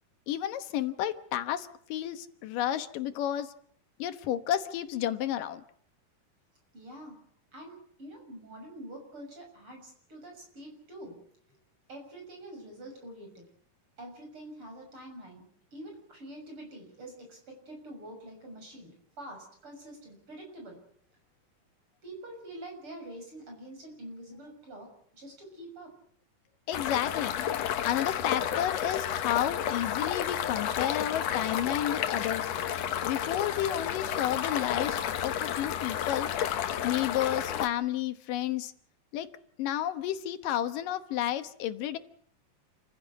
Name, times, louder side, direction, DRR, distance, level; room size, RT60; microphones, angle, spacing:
voice 1, 0.3-3.5 4.0-5.6 26.7-27.3 27.8-32.5 33.0-36.3 36.8-38.7 39.1-39.3 39.6-42.0, left 11 dB, 90° left, 10 dB, 2.9 m, -31 dB
voice 2, 6.7-7.2 7.5-11.2 11.9-13.5 14.0-20.8 22.0-26.0, right 1 dB, 40° right, 3 dB, 7.5 m, -46 dB
sound 1, 26.7-37.7, left 9 dB, 60° left, 2.0 m, -31 dB
28.0 x 16.0 x 8.3 m, 0.62 s
omnidirectional pair, 3.7 m